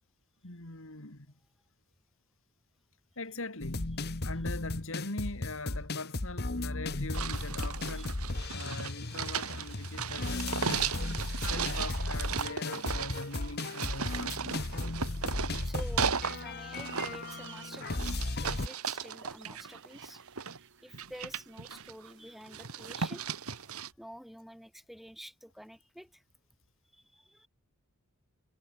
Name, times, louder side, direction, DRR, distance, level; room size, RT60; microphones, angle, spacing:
voice 1, 0.4-1.3 3.2-3.9 4.2-8.1 8.5-11.0 11.3-14.6, left 2 dB, 65° left, 3.3 m, -42 dB
sound 1, 3.6-18.7, left 2 dB, 50° left, 1.4 m, -36 dB
sound 2, 7.1-16.4 16.7-20.6 20.9-22.1 22.5-23.9, right 6 dB, 80° right, 1.9 m, -36 dB
sound 3, 13.8-22.4, right 11 dB, 55° right, 2.6 m, -57 dB
voice 2, 15.6-20.2 20.8-26.2 26.9-27.5, equal, ahead, 2.9 m, -49 dB
head